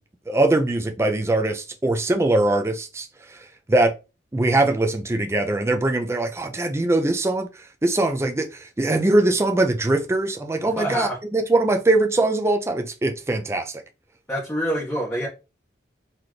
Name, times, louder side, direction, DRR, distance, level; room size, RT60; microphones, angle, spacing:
voice 1, 0.3-3.9 4.3-7.5 7.8-13.7, right 2 dB, 15° right, 0.4 m, -22 dB
voice 2, 10.7-11.2 14.3-15.3, right 1 dB, 15° left, 1.3 m, -26 dB
4.0 x 2.9 x 3.2 m
head